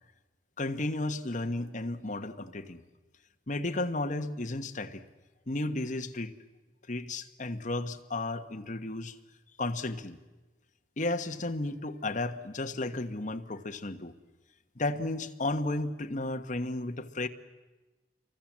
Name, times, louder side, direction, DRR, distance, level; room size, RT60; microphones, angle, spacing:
voice 1, 0.6-2.8 3.5-5.0 5.5-6.3 6.9-9.1 9.6-10.2 11.0-14.1 14.8-17.3, left 2 dB, 45° left, 6 dB, 1.4 m, -33 dB
28.0 x 24.0 x 7.5 m, 1.2 s
head